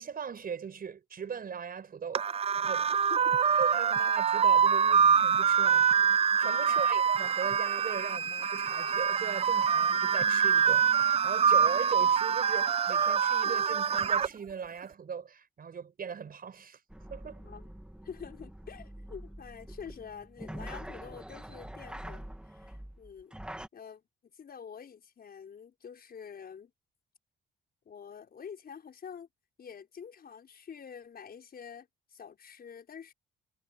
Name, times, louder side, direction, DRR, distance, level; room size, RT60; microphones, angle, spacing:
voice 1, 0.0-2.9 3.6-16.8 17.1-17.5, right 7 dB, 50° right, 5.6 m, -40 dB
sound 1, 2.2-14.3, right 7 dB, 30° right, 0.4 m, -25 dB
voice 2, 6.7-7.0 17.4-17.7 18.0-23.4 23.7-26.7 27.8-29.3 29.6-33.1, left 7 dB, 50° left, 6.4 m, -47 dB
sound 2, 16.9-23.7, right 1 dB, 5° right, 2.7 m, -45 dB
cardioid pair, 90°, 20 cm